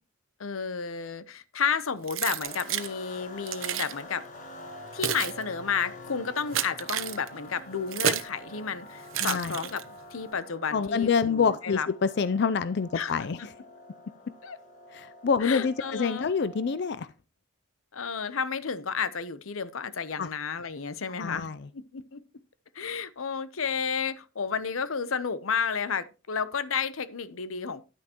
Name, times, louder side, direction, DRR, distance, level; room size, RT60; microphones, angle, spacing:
voice 1, 0.4-4.2 4.9-9.8 10.1-11.9 12.9-13.5 14.4-14.6 15.4-16.3 17.9-21.5 21.7-22.2 22.7-27.8, left 6 dB, 90° left, 0.8 m, -32 dB
Keys jangling, 2.1-2.9 3.5-3.9 4.7-8.4 9.1-10.0, right 9 dB, 80° right, 0.9 m, -31 dB
sound 1, 2.4-17.0, left 1 dB, 40° left, 1.8 m, -47 dB
voice 2, 9.2-9.5 10.7-13.4 14.9-17.1 20.2-20.3 21.2-21.6, left 5 dB, 55° left, 0.4 m, -26 dB
10.5 x 9.6 x 3.0 m
head